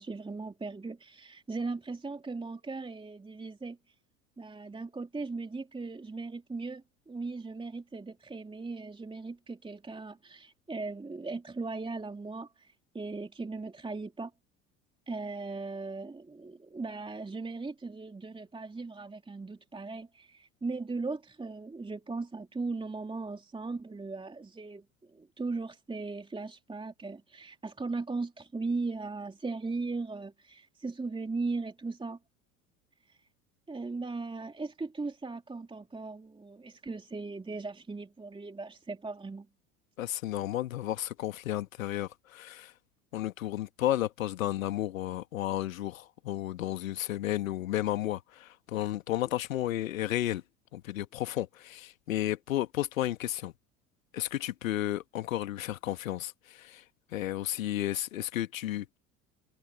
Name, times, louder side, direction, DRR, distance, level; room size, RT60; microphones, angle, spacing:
voice 1, 0.0-3.9 4.4-14.3 15.1-32.2 33.1-33.2 33.7-39.5, right 3 dB, 10° right, 3.1 m, -38 dB
voice 2, 40.0-42.7 43.1-50.4 50.7-53.5 54.1-56.8 57.1-59.0, left 13 dB, 70° left, 1.8 m, -33 dB
figure-of-eight pair, 75°, 42 cm